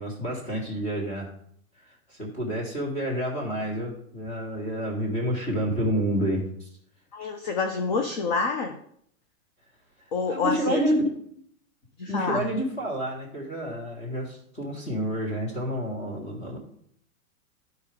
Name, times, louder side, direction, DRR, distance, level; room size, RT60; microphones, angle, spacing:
voice 1, 0.0-1.3 1.8-6.7 10.3-11.4 12.1-16.6, equal, 15° left, -1 dB, 1.7 m, -29 dB
voice 2, 7.1-8.7 10.1-10.8 12.0-12.5, left 4 dB, 35° left, 5 dB, 0.5 m, -27 dB
12.5 x 4.6 x 3.5 m, 0.66 s
supercardioid pair, 165°, 42 cm